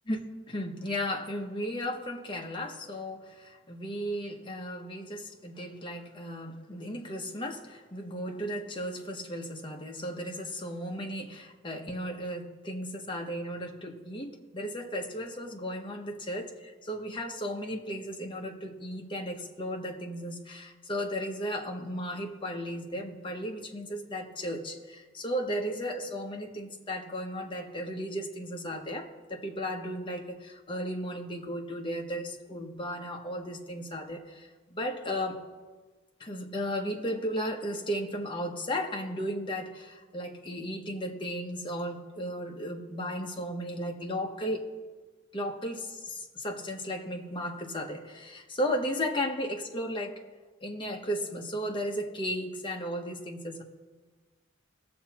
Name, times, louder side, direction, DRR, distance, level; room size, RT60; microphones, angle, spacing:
voice 1, 0.1-35.4 36.2-44.7 45.3-50.2 50.6-53.6, equal, 25° left, 2 dB, 0.9 m, -35 dB
19.5 x 7.0 x 2.9 m, 1.4 s
head